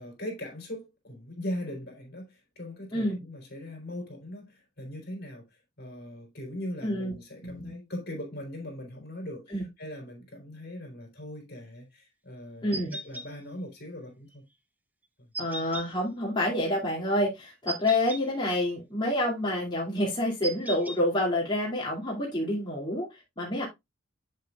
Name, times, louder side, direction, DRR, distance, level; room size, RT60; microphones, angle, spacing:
voice 1, 0.0-14.4 15.2-15.3 15.6-15.7, left 1 dB, 50° left, 3.6 m, -40 dB
voice 2, 6.8-7.1 7.4-7.7 9.5-9.6 12.6-13.0 15.4-23.6, left 1 dB, 25° left, 2.6 m, -28 dB
sound 1, 12.7-13.3 15.3-15.9 17.7-18.2 20.4-21.0, right 2 dB, 10° right, 0.8 m, -36 dB
7.9 x 7.8 x 2.4 m
head